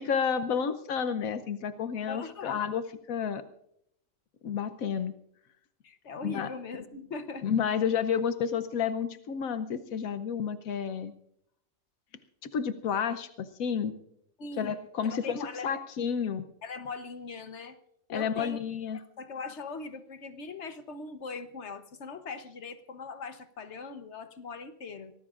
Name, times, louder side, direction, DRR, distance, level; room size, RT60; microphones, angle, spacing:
voice 1, 0.0-3.4 4.4-5.1 6.2-6.5 7.4-11.1 12.4-13.9 14.6-16.4 18.1-19.0, left 7 dB, 85° left, 10 dB, 1.2 m, -30 dB
voice 2, 2.1-2.6 5.8-7.4 14.4-15.7 16.6-17.8 18.1-18.6 19.2-25.1, left 4 dB, 60° left, 9 dB, 1.2 m, -40 dB
24.5 x 18.5 x 2.5 m, 0.74 s
omnidirectional pair, 1.4 m